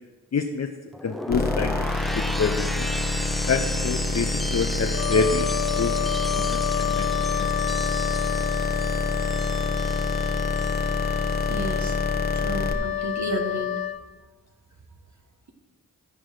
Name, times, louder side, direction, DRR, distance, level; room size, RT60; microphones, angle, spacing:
voice 1, 0.3-0.7 1.0-2.9 3.5-5.9 6.3-7.1 7.4-7.5, left 5 dB, 45° left, 4 dB, 0.8 m, -27 dB
sound 1, 0.9-11.0 11.3-11.8, equal, ahead, 0.3 m, -34 dB
sound 2, 1.3-12.7, left 2 dB, 25° left, 1.2 m, -27 dB
Wind instrument woodwind instrument, 4.9-14.0, left 12 dB, 80° left, 0.7 m, -29 dB
voice 2, 11.5-12.0 12.3-13.7, right 1 dB, 50° right, 3 dB, 1.6 m, -32 dB
13.5 x 4.8 x 6.0 m, 1.3 s
cardioid pair, 40°, 35 cm